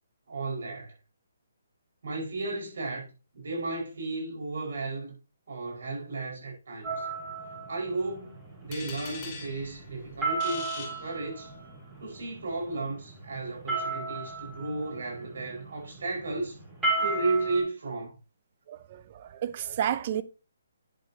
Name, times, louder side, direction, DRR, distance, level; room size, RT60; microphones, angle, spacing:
voice 1, 0.3-0.9 2.0-3.0 3.3-5.2 5.5-7.1 7.7-8.3 8.6-11.5 12.0-16.6 17.0-18.1, right 2 dB, 65° right, 5.3 m, -34 dB
sound 1, 6.8-17.6, right 3 dB, 10° right, 5.3 m, -35 dB
sound 2, 8.7-11.8, left 4 dB, 20° left, 3.7 m, -43 dB
voice 2, 18.7-20.2, right 10 dB, 35° right, 0.7 m, -31 dB
10.5 x 8.1 x 2.9 m
hypercardioid pair, 165°, 0 cm